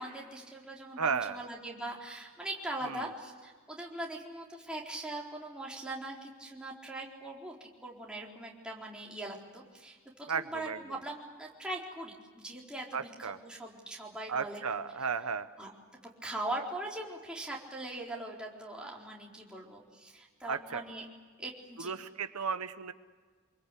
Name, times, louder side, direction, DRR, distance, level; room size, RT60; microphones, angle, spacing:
voice 1, 0.0-14.6 15.6-15.7 16.2-21.0 21.4-21.9, right 1 dB, 5° right, -3 dB, 4.2 m, -41 dB
voice 2, 1.0-1.4 2.8-3.1 10.3-10.8 12.9-13.4 14.3-15.5 20.5-20.8 21.8-22.9, right 5 dB, 85° right, 11 dB, 1.0 m, -34 dB
26.5 x 23.0 x 8.4 m, 1.5 s
head